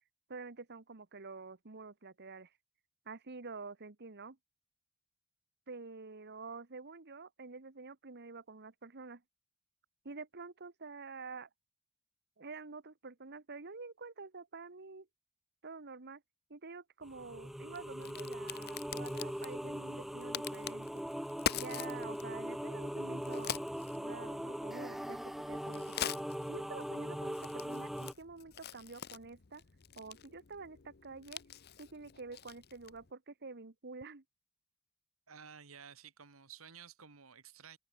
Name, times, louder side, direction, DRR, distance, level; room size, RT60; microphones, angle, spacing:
voice 1, 0.3-2.5 3.0-4.4 5.7-9.2 10.0-11.5 12.4-15.1 15.6-16.2 16.5-21.0 21.5-23.6 24.0-25.8 26.5-29.6 29.9-31.4 31.8-34.2, right 4 dB, 55° right, 1.4 m, -48 dB
Crack, 17.0-33.1, left 9 dB, 50° left, 0.8 m, -45 dB
sound 1, 17.1-28.1, equal, ahead, 0.4 m, -40 dB
voice 2, 35.3-37.8, right 7 dB, 75° right, 1.9 m, -53 dB
head